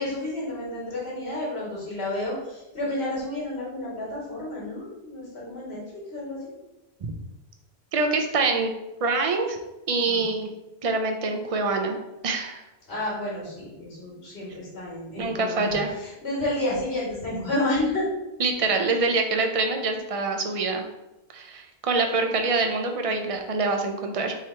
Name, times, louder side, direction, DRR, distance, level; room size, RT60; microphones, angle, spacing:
voice 1, 0.0-6.5 10.1-10.3 12.9-18.1, left 1 dB, 75° left, -6 dB, 1.8 m, -31 dB
voice 2, 7.9-8.7 9.0-9.6 9.9-10.5 10.8-12.0 12.2-12.6 15.2-16.0 18.4-20.8 21.3-24.4, right 3 dB, 45° right, 4 dB, 0.5 m, -25 dB
3.6 x 3.1 x 4.3 m, 0.97 s
omnidirectional pair, 1.1 m